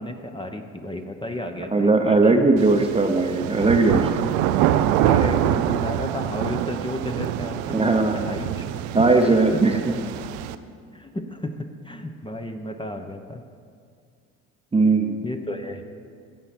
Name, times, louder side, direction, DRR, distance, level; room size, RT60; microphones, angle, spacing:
voice 1, 0.0-2.5 5.0-8.7 9.2-9.6 10.9-13.4 15.2-15.8, left 1 dB, 15° left, 5 dB, 1.0 m, -32 dB
voice 2, 1.7-4.1 7.7-8.3 8.9-9.9 14.7-15.2, right 3 dB, 15° right, 5 dB, 0.9 m, -19 dB
sound 1, 2.6-10.6, right 11 dB, 85° right, 0.5 m, -25 dB
16.5 x 5.6 x 6.1 m, 2.2 s
supercardioid pair, 70°, 34 cm